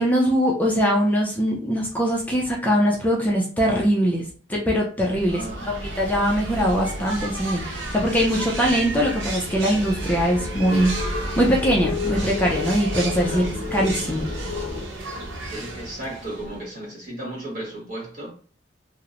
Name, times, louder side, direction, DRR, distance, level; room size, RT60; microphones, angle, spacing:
voice 1, 0.0-5.4 5.7-10.9 11.4-13.5 13.7-14.3, equal, 10° left, 0.4 m, -22 dB
sound 1, 5.1-14.9, left 2 dB, 65° left, 0.5 m, -32 dB
sound 2, 5.1-16.7, right 2 dB, 90° right, 0.7 m, -34 dB
voice 2, 5.3-5.7 13.2-13.5 15.4-18.3, right 1 dB, 50° right, 1.3 m, -34 dB
2.8 x 2.0 x 2.4 m
head